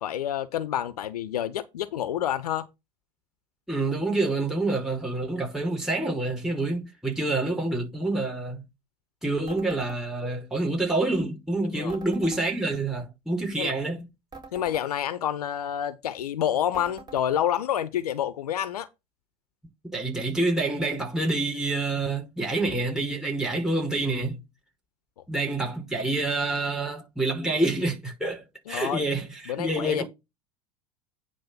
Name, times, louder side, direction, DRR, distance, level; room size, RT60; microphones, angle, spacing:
voice 1, 0.0-2.7 11.7-12.0 13.6-13.7 14.5-18.9 28.7-29.0 29.5-30.0, left 10 dB, 80° left, 0.9 m, -28 dB
voice 2, 3.7-8.6 9.2-14.1 19.9-24.4 25.3-30.0, right 2 dB, 5° right, 5.1 m, -27 dB
sound 1, 9.5-10.0 11.9-12.4 14.3-14.9 16.7-17.3, right 4 dB, 20° right, 3.5 m, -44 dB
9.7 x 3.4 x 6.9 m
hypercardioid pair, 85°, 19 cm